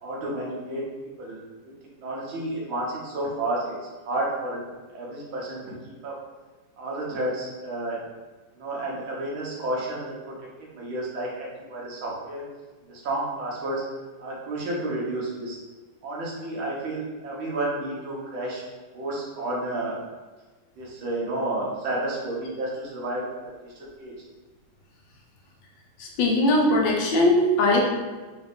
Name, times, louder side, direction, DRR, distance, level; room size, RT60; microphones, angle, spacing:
voice 1, 0.0-0.8 1.2-1.4 2.0-3.8 4.0-4.6 4.9-6.1 6.8-8.0 8.6-10.3 10.7-12.4 12.9-13.8 14.2-15.6 16.0-18.6 18.9-20.0 20.8-23.3 23.6-24.1, right 1 dB, 85° right, -5 dB, 1.8 m, -31 dB
voice 2, 26.0-27.8, left 1 dB, 75° left, -1 dB, 1.3 m, -20 dB
4.3 x 2.4 x 3.4 m, 1.3 s
omnidirectional pair, 2.2 m